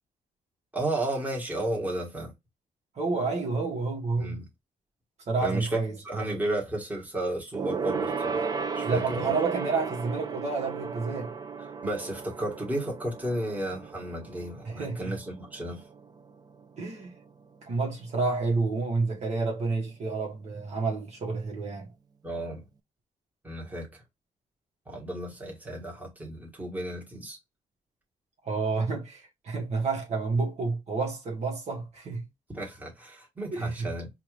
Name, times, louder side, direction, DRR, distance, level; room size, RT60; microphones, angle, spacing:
voice 1, 0.7-2.3 4.2-4.4 5.4-5.8 6.0-8.5 8.7-9.3 11.8-15.8 22.2-22.6 23.4-24.0 24.9-27.4 32.5-34.1, right 1 dB, 10° right, 1.6 m, -33 dB
voice 2, 3.0-4.4 5.3-5.9 8.8-11.3 14.7-15.2 16.8-17.1 17.7-21.9 28.4-32.2 33.5-33.9, right 4 dB, 60° right, 1.2 m, -29 dB
Gong, 7.5-17.3 17.6-17.9 18.2-18.3, right 5 dB, 30° right, 0.5 m, -35 dB
4.5 x 2.5 x 3.2 m
cardioid pair, 130°, 13 cm